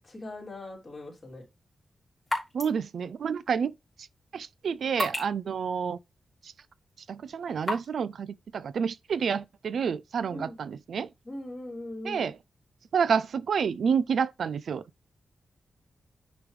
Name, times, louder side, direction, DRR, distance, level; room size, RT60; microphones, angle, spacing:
voice 1, 0.0-1.4 10.3-10.6 11.2-12.3, left 1 dB, 25° left, 3.0 m, -40 dB
sound 1, 1.2-8.0, left 1 dB, 5° left, 3.2 m, -39 dB
voice 2, 2.5-3.7 4.3-6.0 7.1-11.1 12.0-12.3 12.9-14.8, right 6 dB, 65° right, 0.3 m, -29 dB
9.7 x 5.0 x 3.2 m
wide cardioid pair, 170°, 0 cm